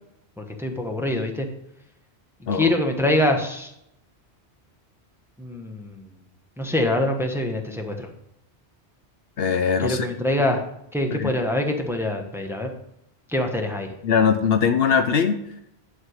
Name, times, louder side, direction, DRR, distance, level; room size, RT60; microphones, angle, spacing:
voice 1, 0.4-1.5 2.5-3.7 5.4-6.1 6.6-8.1 9.8-10.6 10.9-12.7 13.3-13.9, left 1 dB, ahead, 3 dB, 1.1 m, -24 dB
voice 2, 9.4-10.1 11.2-11.4 14.0-15.4, left 6 dB, 65° left, 8 dB, 0.9 m, -21 dB
10.5 x 4.8 x 6.5 m, 0.79 s
omnidirectional pair, 1.1 m